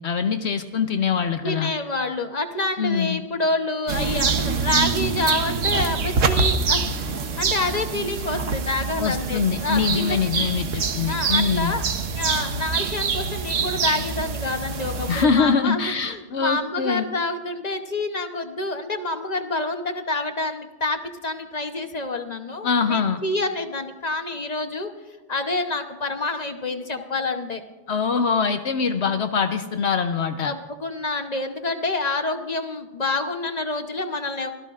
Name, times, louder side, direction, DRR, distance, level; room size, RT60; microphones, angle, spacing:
voice 1, 0.0-1.7 2.8-3.2 9.0-11.8 15.1-17.1 22.6-23.2 27.9-30.5, left 5 dB, 65° left, 8 dB, 1.0 m, -23 dB
voice 2, 1.4-10.5 11.1-11.8 12.1-15.8 16.1-24.9 25.3-27.6 30.4-34.5, left 2 dB, 35° left, 6 dB, 0.9 m, -28 dB
sound 1, 3.9-15.2, right 5 dB, 80° right, 1.3 m, -25 dB
25.0 x 16.5 x 2.5 m, 1.1 s
omnidirectional pair, 1.3 m